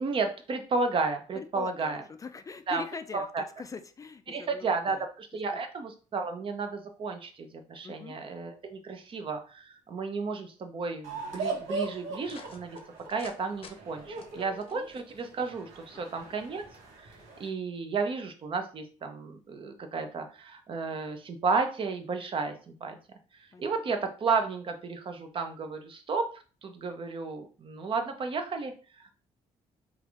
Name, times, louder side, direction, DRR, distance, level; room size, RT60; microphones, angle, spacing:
voice 1, 0.0-2.0 2.7-2.8 3.1-3.4 4.3-12.8 13.1-16.6 17.0-17.1 17.4-23.0 23.4-26.3 26.6-29.1, right 4 dB, 45° right, 0.7 m, -33 dB
voice 2, 1.4-5.0 7.8-8.2 14.4-14.9 15.9-16.4 23.5-23.7, left 5 dB, 30° left, 0.3 m, -43 dB
sound 1, 11.0-17.5, right 3 dB, 90° right, 1.1 m, -39 dB
sound 2, 12.2-13.4 13.6-13.7 14.2-15.5, left 5 dB, 50° left, 0.7 m, -50 dB
3.4 x 2.5 x 3.3 m
cardioid pair, 85°, 12 cm